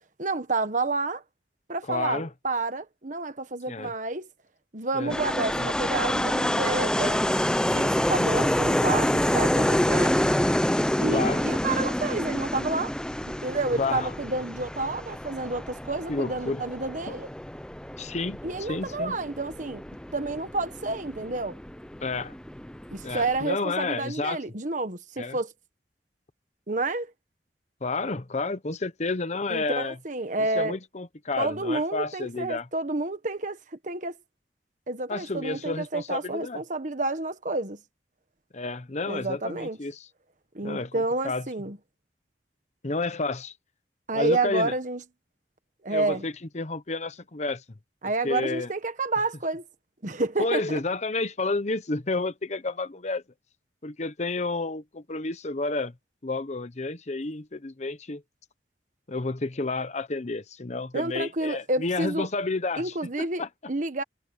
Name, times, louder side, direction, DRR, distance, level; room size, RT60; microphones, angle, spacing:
voice 1, 0.2-1.2 1.7-4.3 4.7-7.3 7.7-10.1 11.0-12.9 13.4-17.3 18.4-19.8 20.1-21.6 22.9-25.5 26.7-27.1 29.5-30.8 31.4-33.6 33.8-34.1 34.9-37.8 39.1-39.8 40.5-41.8 44.1-45.0 45.8-46.2 48.0-49.6 50.0-50.8 60.9-62.3 62.8-63.4 63.7-64.0, right 2 dB, 45° right, 1.4 m, -29 dB
voice 2, 1.9-2.3 3.7-3.9 4.9-5.2 5.6-5.7 11.1-11.5 13.8-14.1 16.1-16.6 17.1-17.2 18.0-19.1 22.0-22.3 23.0-24.4 25.2-25.4 27.8-30.0 30.5-32.7 35.1-36.6 38.5-40.1 40.6-41.4 42.8-43.5 44.1-44.7 45.9-47.6 48.2-48.7 50.4-53.2 53.8-55.9 56.2-58.2 59.1-63.5, left 3 dB, 40° left, 0.9 m, -30 dB
sound 1, 5.1-23.4, left 1 dB, 5° left, 0.6 m, -27 dB
head